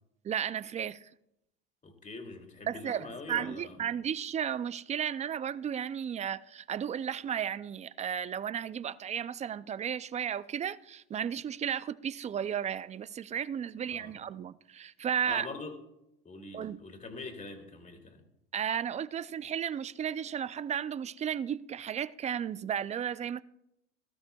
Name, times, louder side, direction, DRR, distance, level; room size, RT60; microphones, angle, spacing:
voice 1, 0.2-1.1 2.7-15.5 16.5-16.8 18.5-23.4, right 9 dB, 20° right, 0.3 m, -34 dB
voice 2, 1.8-3.8 13.9-14.1 15.3-15.8 16.2-18.2, left 3 dB, 20° left, 2.6 m, -43 dB
19.5 x 12.5 x 2.3 m
supercardioid pair, 105°, 35 cm